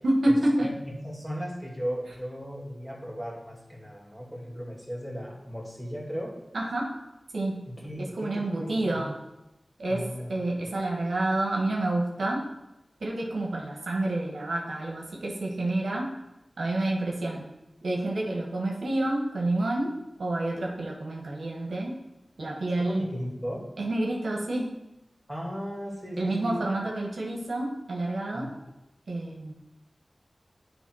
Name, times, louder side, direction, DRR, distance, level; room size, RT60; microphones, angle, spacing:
voice 1, 0.0-0.7 6.5-6.9 7.3-7.6 8.0-9.1 9.8-12.5 13.0-16.1 16.6-17.5 17.8-22.0 22.4-23.2 23.8-24.7 26.2-28.5 29.1-29.5, right 1 dB, 90° right, -2 dB, 1.3 m, -28 dB
voice 2, 0.6-6.3 7.7-9.0 9.9-10.3 22.8-23.7 25.3-26.6 28.3-28.5, equal, ahead, -3 dB, 2.5 m, -36 dB
10.0 x 3.4 x 4.7 m, 0.93 s
cardioid pair, 45°, 0 cm